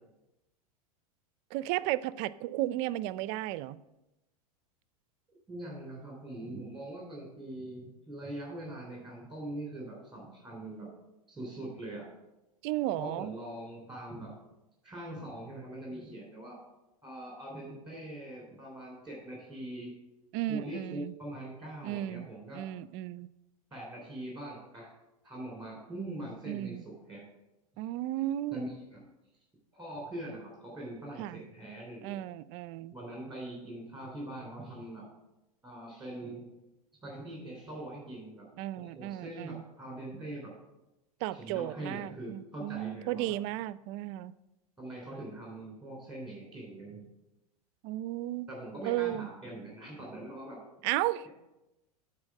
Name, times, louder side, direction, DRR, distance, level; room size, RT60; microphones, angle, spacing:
voice 1, 1.5-3.8 12.6-13.3 20.3-21.1 21.8-22.3 22.5-23.3 26.4-26.8 27.8-28.6 31.2-31.4 32.0-32.9 38.6-39.6 41.2-44.3 47.8-48.5 48.8-49.3 50.8-51.3, right 15 dB, 50° right, 17 dB, 0.4 m, -34 dB
voice 2, 5.3-10.9 11.3-12.1 13.0-14.4 14.8-16.6 17.0-19.9 20.5-22.6 23.7-24.9 25.2-27.2 28.5-29.0 29.7-32.2 32.9-35.1 35.6-36.5 37.0-38.5 38.7-40.5 41.3-43.4 44.8-47.1 48.5-50.6, right 1 dB, ahead, -3 dB, 3.2 m, -42 dB
8.7 x 4.2 x 7.2 m, 0.96 s
hypercardioid pair, 105°, 19 cm